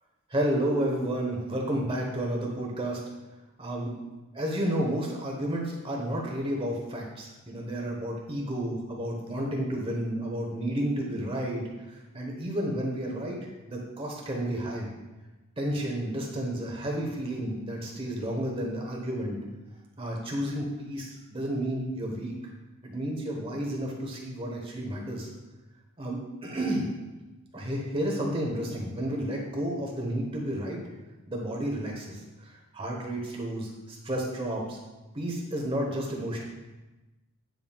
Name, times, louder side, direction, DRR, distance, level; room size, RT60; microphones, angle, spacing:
voice 1, 0.3-3.0 3.6-3.9 4.3-11.6 12.1-13.4 13.7-14.9 15.6-19.4 20.0-22.4 22.8-25.3 26.0-26.8 27.5-30.8 31.3-32.2 32.7-34.8 35.1-36.4, right 1 dB, 25° right, -1 dB, 1.1 m, -31 dB
8.9 x 5.5 x 2.4 m, 1.1 s
head